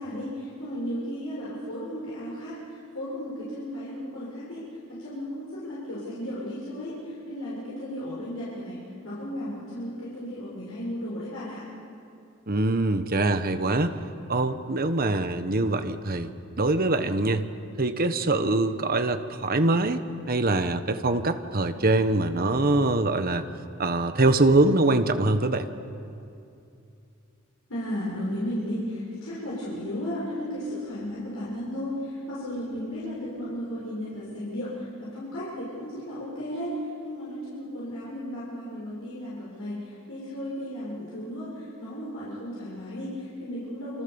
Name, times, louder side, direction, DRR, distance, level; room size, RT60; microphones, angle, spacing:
voice 1, 0.0-4.6 4.9-11.6 27.7-36.7 37.0-44.0, equal, 90° left, -8 dB, 7.1 m, -34 dB
voice 2, 12.5-14.0 14.3-16.3 16.6-17.5 17.8-23.5 23.8-25.7, right 2 dB, 45° right, 9 dB, 1.3 m, -23 dB
28.5 x 27.0 x 7.1 m, 2.6 s
head